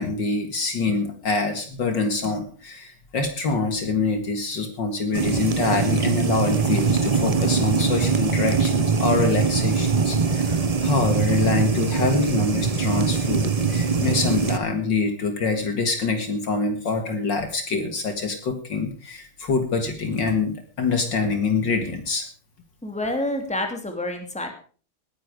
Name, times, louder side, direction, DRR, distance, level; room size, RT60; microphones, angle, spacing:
voice 1, 0.0-22.3, left 4 dB, 55° left, 6 dB, 2.4 m, -25 dB
sound 1, 5.1-14.6, right 5 dB, 45° right, 0.4 m, -22 dB
voice 2, 22.8-24.5, left 1 dB, 5° left, 4 dB, 2.6 m, -28 dB
19.0 x 10.5 x 5.1 m, 0.41 s
omnidirectional pair, 2.4 m